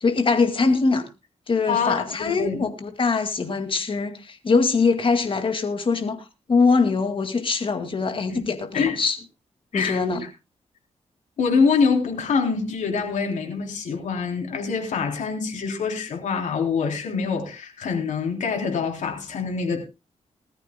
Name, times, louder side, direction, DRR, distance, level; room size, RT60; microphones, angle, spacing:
voice 1, 0.0-1.0 1.5-9.2 9.7-10.2, left 4 dB, 45° left, 2.2 m, -22 dB
voice 2, 1.7-2.6 8.3-8.4 8.7-9.0 9.7-10.0 11.4-19.8, left 5 dB, 85° left, 3.4 m, -25 dB
20.0 x 13.5 x 2.2 m
cardioid pair, 90°, 12 cm